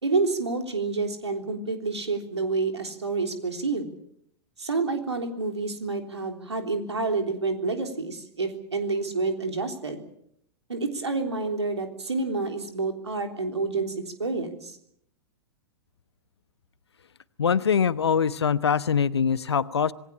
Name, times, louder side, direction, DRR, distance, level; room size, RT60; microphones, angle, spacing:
voice 1, 0.0-3.9 4.6-10.0 10.7-14.8, right 3 dB, 75° right, 5 dB, 3.5 m, -28 dB
voice 2, 17.4-19.9, left 7 dB, 70° left, 16 dB, 1.0 m, -23 dB
27.0 x 19.5 x 7.0 m, 0.71 s
figure-of-eight pair, 100°, 14 cm